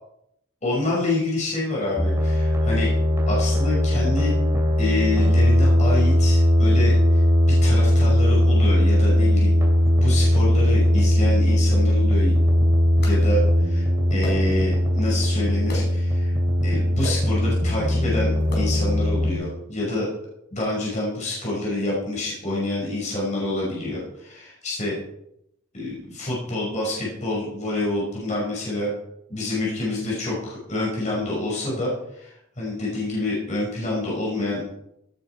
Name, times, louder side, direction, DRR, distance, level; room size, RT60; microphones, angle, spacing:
voice 1, 0.6-2.9 3.3-4.3 4.8-7.2 7.5-9.6 9.9-12.3 13.0-16.3 16.6-20.1 20.5-25.0 25.7-28.9 29.3-34.6, left 2 dB, 35° left, -5 dB, 5.8 m, -27 dB
sound 1, 2.0-19.3, left 1 dB, 15° right, 3.0 m, -19 dB
sound 2, 13.0-13.2 14.2-14.7 15.7-16.1 17.0-17.4 18.4-18.9, left 1 dB, 50° left, 5.0 m, -35 dB
16.5 x 9.5 x 4.8 m, 0.78 s
head